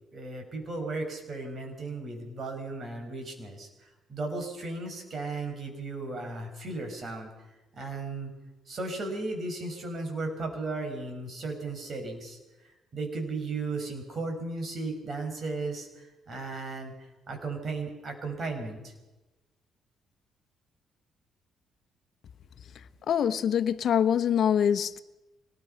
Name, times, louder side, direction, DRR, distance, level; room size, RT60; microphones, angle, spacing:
voice 1, 0.1-7.3 7.7-8.3 8.7-18.9, right 3 dB, 45° right, 6.4 m, -35 dB
voice 2, 23.1-25.0, left 8 dB, 60° left, 1.0 m, -24 dB
25.0 x 19.5 x 5.9 m
cardioid pair, 90°, 0 cm